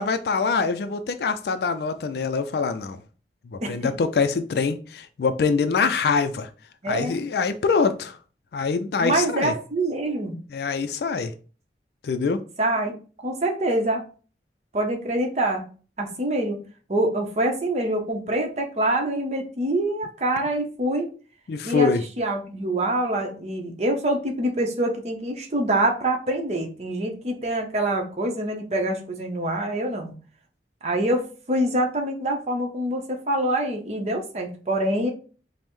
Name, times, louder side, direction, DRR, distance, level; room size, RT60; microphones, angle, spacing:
voice 1, 0.0-3.0 3.5-6.5 6.9-8.2 8.5-9.5 10.5-11.3 12.0-12.4 21.5-22.0, left 5 dB, 65° left, 0.3 m, -24 dB
voice 2, 3.6-3.9 6.8-7.2 9.0-10.4 12.6-12.9 13.2-14.0 14.7-15.6 16.0-16.6 16.9-21.1 21.6-30.1 30.8-35.1, right 1 dB, 35° right, 0.7 m, -25 dB
5.2 x 2.1 x 3.0 m
head